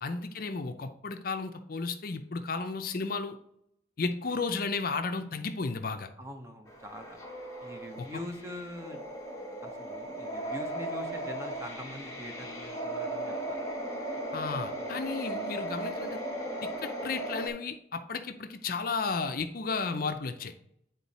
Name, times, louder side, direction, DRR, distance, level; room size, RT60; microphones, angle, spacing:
voice 1, 0.0-3.4 4.0-6.1 8.0-8.1 14.3-16.2 16.6-20.5, left 4 dB, 50° left, 7 dB, 0.5 m, -33 dB
voice 2, 6.2-7.2 7.6-9.0 9.6-13.6, left 1 dB, 15° right, 5 dB, 0.8 m, -43 dB
sound 1, 6.7-17.5, right 1 dB, 15° left, 1.2 m, -37 dB
8.9 x 3.8 x 4.1 m, 0.75 s
head